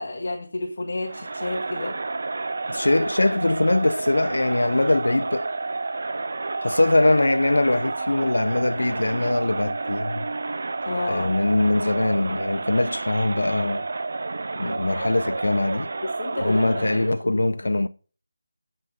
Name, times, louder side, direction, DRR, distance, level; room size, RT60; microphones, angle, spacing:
voice 1, 0.0-2.0 10.8-11.3 16.0-17.8, left 2 dB, 50° left, 1.5 m, -31 dB
Crowd, 1.0-17.2, right 3 dB, 50° right, 0.5 m, -30 dB
voice 2, 2.7-5.5 6.6-10.3 11.1-13.9 14.6-15.9 16.4-17.9, left 2 dB, 85° left, 0.5 m, -22 dB
7.9 x 5.6 x 4.9 m
figure-of-eight pair, 170°, 0 cm